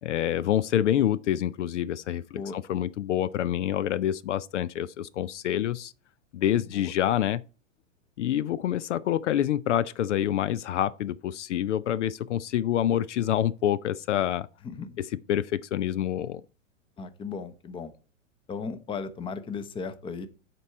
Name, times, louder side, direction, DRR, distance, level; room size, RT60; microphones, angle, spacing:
voice 1, 0.0-5.9 6.3-7.4 8.2-14.5 15.0-16.4, left 11 dB, 65° left, 0.5 m, -27 dB
voice 2, 14.6-15.0 17.0-17.9 18.5-20.3, left 5 dB, 15° left, 0.7 m, -36 dB
7.8 x 4.5 x 6.3 m
figure-of-eight pair, 105°, 39 cm